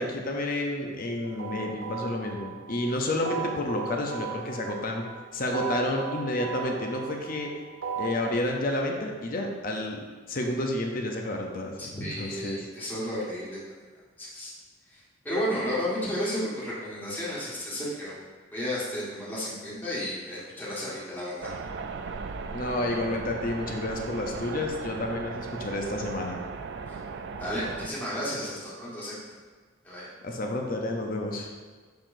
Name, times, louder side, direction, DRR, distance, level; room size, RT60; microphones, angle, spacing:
voice 1, 0.0-5.0 5.3-7.5 8.0-10.0 10.3-12.6 22.5-26.4 30.2-31.5, left 1 dB, 45° left, 1 dB, 0.7 m, -30 dB
sound 1, 1.2-8.3, right 7 dB, 90° right, 0.8 m, -37 dB
voice 2, 11.8-13.6 14.2-14.5 14.9-18.2 18.5-21.5 26.9-27.0 27.4-29.2 29.8-30.1, equal, 10° left, -8 dB, 1.6 m, -33 dB
sound 2, 21.4-27.9, right 4 dB, 60° right, 0.4 m, -37 dB
6.8 x 5.8 x 2.6 m, 1.5 s
head